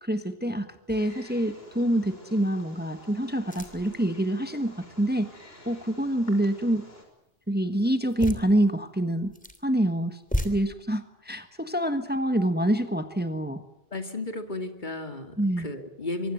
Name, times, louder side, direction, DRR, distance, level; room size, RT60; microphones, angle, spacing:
voice 1, 0.0-5.3 5.6-6.8 7.5-9.3 9.6-10.2 10.4-13.6 15.4-15.7, right 1 dB, 10° right, 8 dB, 1.4 m, -26 dB
Wild animals, 0.9-7.0, left 1 dB, 75° left, 5.8 m, -50 dB
sound 1, 0.9-1.3 1.8-1.9 3.4-4.0 8.1-8.5 9.2-9.6 10.2-10.5, equal, 10° left, 3.0 m, -33 dB
voice 2, 13.9-16.3, left 2 dB, 50° left, 6 dB, 2.6 m, -34 dB
24.5 x 24.5 x 7.9 m, 0.80 s
omnidirectional pair, 1.0 m